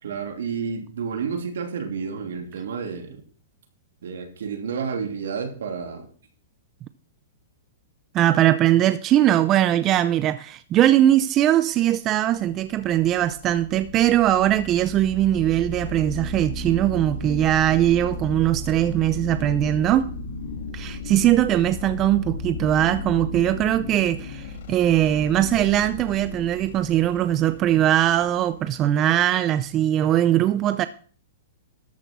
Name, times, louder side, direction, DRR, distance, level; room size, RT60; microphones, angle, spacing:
voice 1, 0.0-3.2 4.0-6.1, right 6 dB, 80° right, 2.9 m, -30 dB
voice 2, 8.1-20.1 20.7-30.9, right 12 dB, 30° right, 0.5 m, -20 dB
sound 1, 12.4-29.8, left 2 dB, 65° left, 2.2 m, -35 dB
13.0 x 6.5 x 6.1 m
hypercardioid pair, 140°, 0 cm